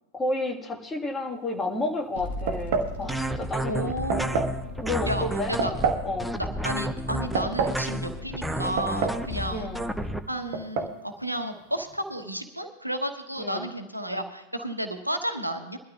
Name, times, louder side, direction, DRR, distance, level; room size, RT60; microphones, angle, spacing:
voice 1, 0.1-3.9 4.8-5.5 6.0-6.3 9.5-9.8 13.4-13.7, left 2 dB, 15° left, 1 dB, 1.7 m, -31 dB
sound 1, 2.1-10.2, left 3 dB, 60° left, 2.5 m, -39 dB
sound 2, 2.5-3.0 4.1-4.6 5.6-6.1 7.1-7.8 8.8-9.3 9.6-9.7 10.5-11.0, right 5 dB, 50° right, 1.3 m, -27 dB
sound 3, 3.1-10.2, right 1 dB, 5° right, 0.6 m, -31 dB
voice 2, 3.6-4.5 5.1-5.7 6.3-9.7 10.3-15.8, equal, 85° right, 7 dB, 1.1 m, -32 dB
22.5 x 12.5 x 2.4 m, 0.93 s
figure-of-eight pair, 90°, 0 cm